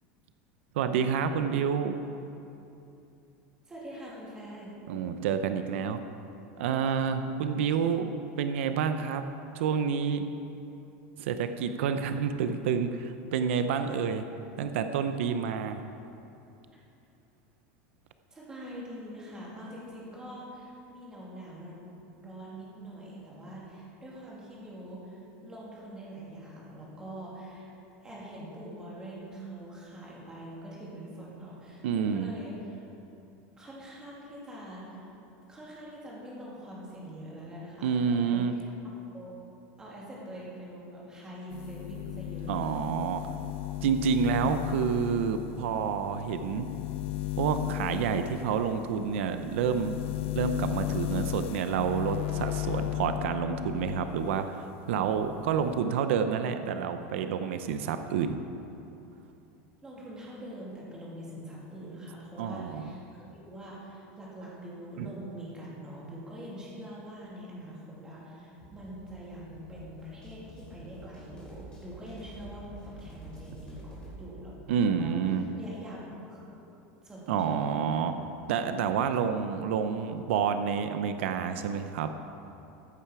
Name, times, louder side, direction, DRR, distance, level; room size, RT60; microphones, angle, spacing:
voice 1, 0.7-2.0 4.9-6.0 6.6-8.1 8.4-9.3 9.5-10.2 11.2-14.2 14.6-15.8 31.8-32.3 37.8-38.5 42.5-43.2 43.8-46.7 47.4-50.0 50.3-58.4 62.4-63.0 65.0-65.1 74.7-75.5 77.3-78.2 78.5-82.1, right 7 dB, 90° right, 8 dB, 0.7 m, -29 dB
voice 2, 3.7-4.7 18.3-21.8 22.2-27.7 28.0-32.9 33.6-35.1 35.5-38.7 39.1-39.3 39.8-42.9 59.8-63.0 63.3-74.5 75.0-76.5 77.0-78.0, right 1 dB, 10° right, -5 dB, 2.3 m, -44 dB
sound 1, 41.5-54.5 54.8-55.8, left 16 dB, 80° left, 0.4 m, -35 dB
sound 2, 68.6-74.2, right 2 dB, 15° left, 3.1 m, -48 dB
14.5 x 9.0 x 4.8 m, 2.8 s
supercardioid pair, 180°, 6 cm